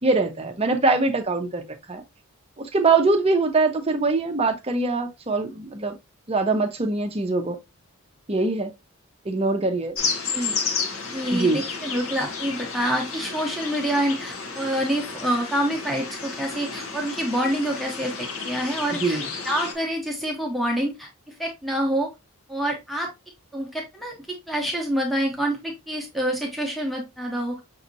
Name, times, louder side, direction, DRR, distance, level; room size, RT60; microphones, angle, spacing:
voice 1, 0.0-2.0 2.6-5.9 6.3-7.6 8.3-8.7 9.2-10.0 11.3-11.6 18.9-19.3, right 3 dB, 25° right, 0.6 m, -23 dB
sound 1, 10.0-19.7, left 5 dB, 70° left, 1.0 m, -32 dB
voice 2, 11.1-19.2 19.4-22.1 22.5-23.1 23.5-24.1 24.5-27.6, equal, ahead, 0.9 m, -27 dB
6.0 x 2.8 x 2.6 m
head